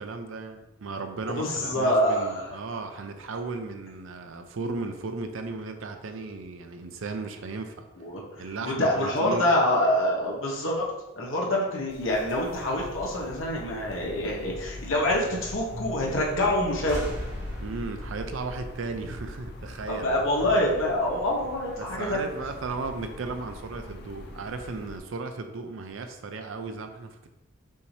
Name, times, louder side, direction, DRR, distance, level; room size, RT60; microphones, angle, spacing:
voice 1, 0.0-7.9 8.4-9.5 17.6-20.2 21.8-27.3, right 3 dB, 75° right, 7 dB, 0.5 m, -35 dB
voice 2, 1.3-2.6 8.0-10.9 11.2-17.1 19.9-22.3, left 1 dB, 75° left, -3 dB, 1.0 m, -26 dB
sound 1, 11.9-25.0, left 1 dB, 50° left, 0.5 m, -42 dB
sound 2, 16.9-20.4, equal, 55° right, 0.8 m, -40 dB
5.4 x 2.7 x 3.2 m, 0.98 s
head